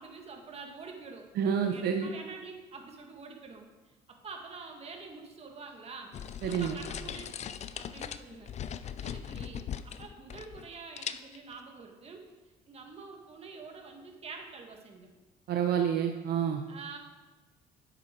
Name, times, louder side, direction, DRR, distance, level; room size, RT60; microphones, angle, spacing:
voice 1, 0.0-1.3 1.7-6.1 6.5-7.3 7.7-8.5 9.0-12.2 12.7-15.1 16.7-17.0, right 4 dB, 35° right, 2 dB, 1.9 m, -46 dB
voice 2, 1.4-2.1 6.4-6.8 15.5-16.6, right 8 dB, 70° right, 4 dB, 0.8 m, -28 dB
sound 1, 6.1-10.7 11.0-11.5, left 8 dB, 40° left, 0.5 m, -40 dB
9.3 x 8.1 x 4.5 m, 1.2 s
cardioid pair, 110°, 17 cm